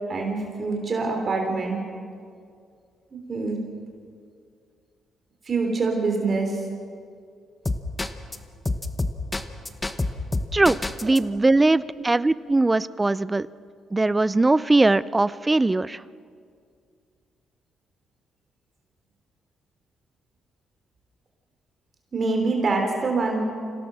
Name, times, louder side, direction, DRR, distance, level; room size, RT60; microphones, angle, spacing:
voice 1, 0.1-1.8 3.1-3.6 5.5-6.6 22.1-23.4, right 3 dB, 40° right, 2 dB, 3.3 m, -25 dB
sound 1, 7.7-8.4 8.7-11.2, left 2 dB, 20° left, 1.2 m, -26 dB
voice 2, 10.5-13.5 13.9-16.0, right 2 dB, 20° right, 18 dB, 0.5 m, -20 dB
26.5 x 17.0 x 6.3 m, 2.3 s
cardioid pair, 90°, 0 cm